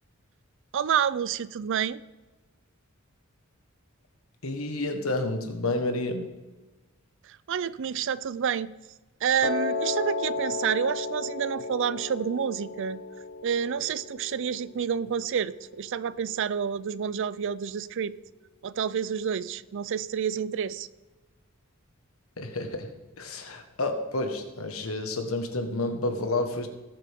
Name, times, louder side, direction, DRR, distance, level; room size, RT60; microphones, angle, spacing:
voice 1, 0.7-2.0 7.2-8.7 9.2-13.0 13.4-18.1 18.6-20.9, right 7 dB, 60° right, 0.4 m, -29 dB
voice 2, 4.4-6.3 22.4-22.9 23.2-26.7, left 2 dB, 75° left, 1.5 m, -30 dB
Piano, 9.4-15.6, left 3 dB, 50° left, 0.8 m, -34 dB
18.5 x 7.8 x 3.6 m
head